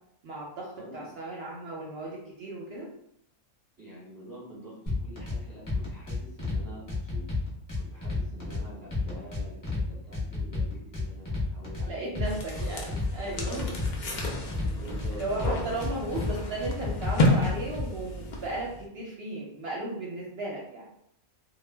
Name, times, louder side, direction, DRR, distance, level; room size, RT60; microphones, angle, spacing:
voice 1, 0.2-2.9 8.4-8.6 11.8-13.6 15.1-20.9, right 2 dB, 65° right, -3 dB, 0.7 m, -35 dB
voice 2, 0.8-1.1 3.8-7.2 7.7-12.1 13.4-15.8, equal, 20° right, -7 dB, 0.6 m, -46 dB
sound 1, 4.9-5.4 5.7-6.6 6.9-8.6 8.9-9.8 10.1-11.9 12.1-13.1 13.4-15.1 15.4-16.3 16.6-17.8, left 3 dB, 20° left, 0.6 m, -31 dB
sound 2, 12.2-18.8, left 1 dB, 85° left, 0.4 m, -31 dB
2.2 x 2.1 x 3.3 m, 0.72 s
omnidirectional pair, 1.4 m